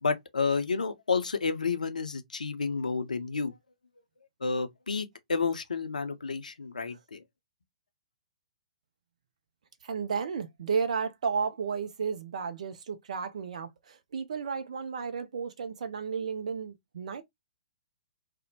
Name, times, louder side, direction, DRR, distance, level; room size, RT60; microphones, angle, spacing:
voice 1, 0.0-3.5 4.4-7.2, left 4 dB, 75° left, 0.5 m, -30 dB
voice 2, 9.8-17.2, right 6 dB, 60° right, 0.4 m, -33 dB
2.5 x 2.1 x 2.7 m
figure-of-eight pair, 120°, 4 cm